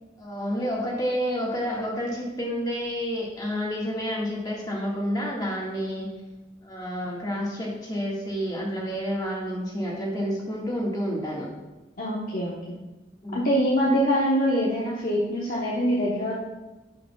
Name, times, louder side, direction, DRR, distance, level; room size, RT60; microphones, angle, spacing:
voice 1, 0.2-6.1 6.6-11.5 13.2-13.5, equal, 20° left, -4 dB, 1.7 m, -29 dB
voice 2, 12.0-12.5 13.3-16.4, equal, 50° left, -5 dB, 1.1 m, -24 dB
11.0 x 5.0 x 2.3 m, 1.1 s
head